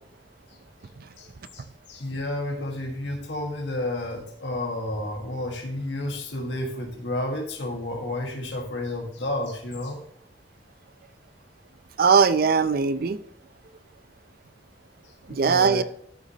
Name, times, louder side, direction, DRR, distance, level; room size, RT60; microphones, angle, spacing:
voice 1, 1.5-10.0 15.4-15.8, left 1 dB, 75° left, 1.6 m, -31 dB
voice 2, 12.0-13.2 15.3-15.8, right 5 dB, 55° right, 0.5 m, -20 dB
11.5 x 6.2 x 2.9 m
head